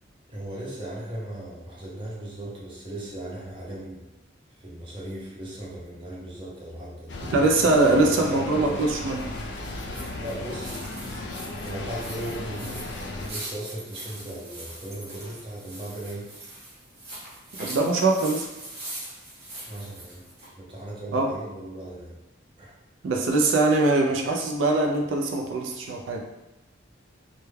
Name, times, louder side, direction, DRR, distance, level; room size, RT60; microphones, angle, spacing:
voice 1, 0.3-4.1 4.6-7.4 7.9-8.8 10.2-10.7 11.6-16.4 19.6-20.2 20.6-22.2 22.6-22.8 25.2-25.4, right 1 dB, 25° right, -5 dB, 0.5 m, -37 dB
sound 1, 7.1-13.3, left 2 dB, 65° left, 0.4 m, -35 dB
voice 2, 7.2-9.2 17.6-18.5 21.1-21.3 23.0-26.2, right 2 dB, 90° right, 1 dB, 0.4 m, -22 dB
sound 2, 8.2-20.5, right 1 dB, 55° right, 0.9 m, -42 dB
2.2 x 2.1 x 3.2 m, 0.97 s
head